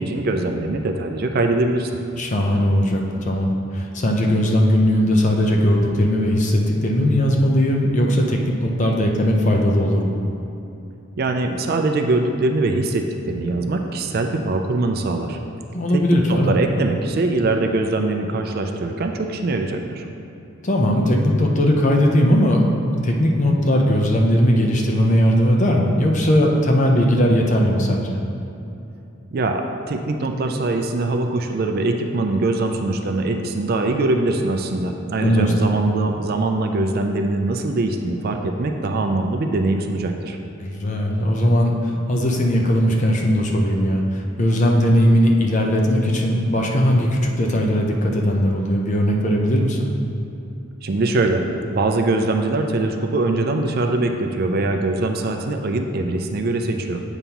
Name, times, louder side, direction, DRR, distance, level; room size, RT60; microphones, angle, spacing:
voice 1, 0.0-1.9 11.2-15.4 15.9-16.0 16.3-20.1 29.3-40.4 50.8-57.0, right 2 dB, 45° right, 4 dB, 0.4 m, -22 dB
voice 2, 2.2-10.1 15.7-16.6 20.6-28.2 35.2-35.5 40.6-49.9, equal, 35° left, 0 dB, 0.6 m, -18 dB
8.1 x 5.4 x 2.9 m, 2.8 s
head